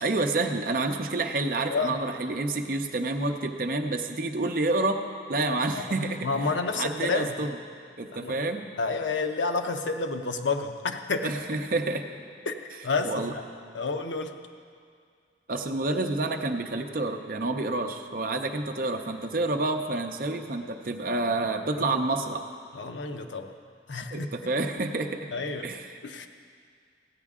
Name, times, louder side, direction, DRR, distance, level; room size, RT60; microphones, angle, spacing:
voice 1, 0.0-5.0 5.3-7.6 8.0-8.7 11.2-12.1 13.0-13.3 15.5-22.5 24.1-25.3 25.6-26.0, right 2 dB, 50° right, 5 dB, 0.6 m, -29 dB
voice 2, 6.2-7.3 8.2-8.4 8.8-11.3 12.5-12.6 12.8-13.4 13.7-14.3 21.8-22.0 22.7-23.5 23.9-24.3 25.3-25.7 26.0-26.3, left 4 dB, 85° left, 6 dB, 0.7 m, -29 dB
15.5 x 9.3 x 3.6 m, 2.2 s
head